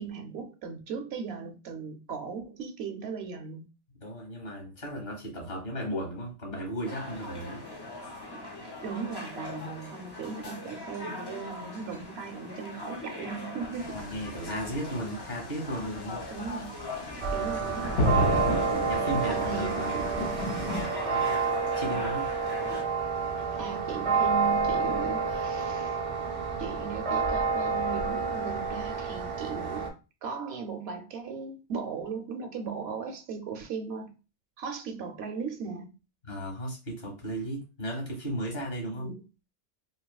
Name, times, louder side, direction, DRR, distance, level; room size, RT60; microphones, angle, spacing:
voice 1, 0.0-3.7 8.3-8.5 8.8-14.0 16.3-16.7 17.0-18.3 19.2-20.3 23.4-26.0 26.6-29.9 30.2-34.2 34.6-35.9 38.9-39.2, right 5 dB, 70° right, 0.8 m, -38 dB
voice 2, 4.0-7.6 13.9-16.2 17.4-17.7 18.9-20.2 21.1-21.4 21.7-22.3 36.2-39.1, right 1 dB, 60° left, 1.6 m, -35 dB
sound 1, 6.8-22.8, left 2 dB, 40° left, 0.3 m, -40 dB
sound 2, 13.7-20.9, equal, 80° left, 1.1 m, -33 dB
sound 3, 17.2-29.9, right 5 dB, 45° right, 0.5 m, -29 dB
3.2 x 2.6 x 2.3 m
omnidirectional pair, 1.2 m